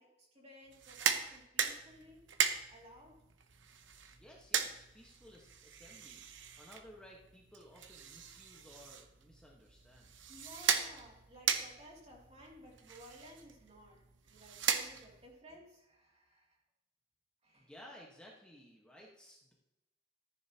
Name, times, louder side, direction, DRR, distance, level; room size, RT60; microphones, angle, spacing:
voice 1, 0.0-2.2 2.7-3.2 10.3-16.6 17.4-17.7, equal, 35° right, -2 dB, 2.9 m, -57 dB
sound 1, 0.7-15.3, right 7 dB, 85° right, 0.9 m, -38 dB
voice 2, 4.1-10.1 17.5-19.5, equal, 5° left, -3 dB, 1.4 m, -57 dB
14.0 x 10.5 x 3.0 m, 0.93 s
head